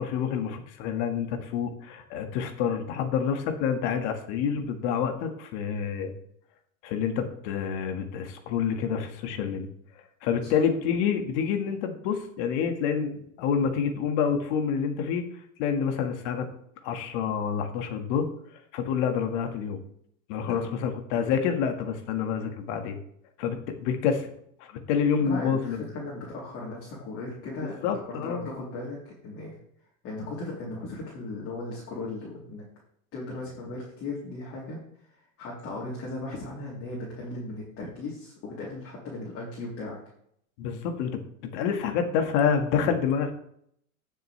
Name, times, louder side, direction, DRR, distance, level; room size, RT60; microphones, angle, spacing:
voice 1, 0.0-6.1 6.8-9.7 10.2-15.3 15.6-16.5 16.8-18.3 18.7-19.8 20.3-23.0 23.4-24.3 24.6-25.8 27.8-28.5 40.6-41.2 41.5-43.3, left 7 dB, 55° left, 6 dB, 1.8 m, -28 dB
voice 2, 25.2-29.5 30.0-32.7 33.1-34.8 35.4-40.0, left 2 dB, 35° left, -6 dB, 3.4 m, -37 dB
16.0 x 6.8 x 3.3 m, 0.70 s
supercardioid pair, 130°, 42 cm